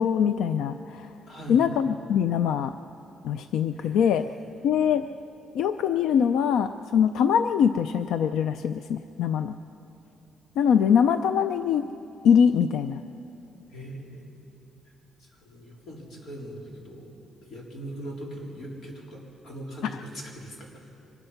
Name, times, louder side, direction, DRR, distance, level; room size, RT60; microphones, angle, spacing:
voice 1, 0.0-1.1 1.5-2.8 3.2-4.3 4.6-5.1 5.5-9.6 10.6-11.9 12.2-13.0, left 7 dB, 85° left, 10 dB, 0.5 m, -23 dB
voice 2, 1.3-1.6 3.7-4.3 13.7-14.4 15.2-17.1 17.4-20.9, equal, 50° left, -1 dB, 4.0 m, -41 dB
25.0 x 20.5 x 5.8 m, 2.9 s
cardioid pair, 155°, 0 cm